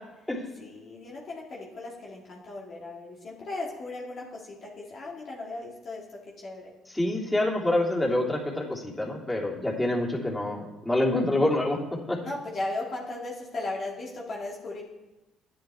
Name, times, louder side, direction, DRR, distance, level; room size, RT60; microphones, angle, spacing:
voice 1, 0.6-6.0 6.4-6.7 12.2-14.8, left 2 dB, 55° left, -3 dB, 2.1 m, -36 dB
voice 2, 6.9-11.8 12.1-12.2, left 1 dB, 15° left, -3 dB, 3.0 m, -26 dB
10.5 x 9.3 x 3.5 m, 1.1 s
hypercardioid pair, 60°, 0 cm